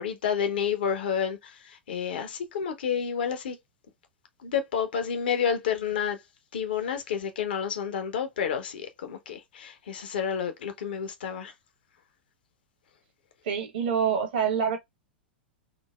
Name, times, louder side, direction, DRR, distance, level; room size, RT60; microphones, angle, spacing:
voice 1, 0.0-3.6 4.4-6.2 6.5-11.5, left 7 dB, 60° left, 0.8 m, -30 dB
voice 2, 13.4-14.8, right 7 dB, 55° right, 1.0 m, -26 dB
3.9 x 2.0 x 2.3 m
figure-of-eight pair, 95°, 6 cm